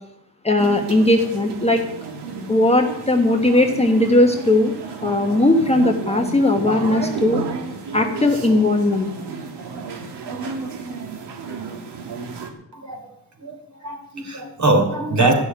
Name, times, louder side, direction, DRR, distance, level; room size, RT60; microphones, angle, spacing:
voice 1, 0.4-1.8 2.5-4.7 5.0-7.4 7.9-9.1, left 2 dB, 15° left, 3 dB, 1.2 m, -18 dB
sound 1, 0.6-12.5, right 5 dB, 85° right, 2.1 m, -32 dB
voice 2, 12.7-13.1 13.4-15.3, right 2 dB, 45° right, 3 dB, 3.4 m, -22 dB
14.0 x 6.4 x 9.4 m, 0.80 s
cardioid pair, 130°, 40 cm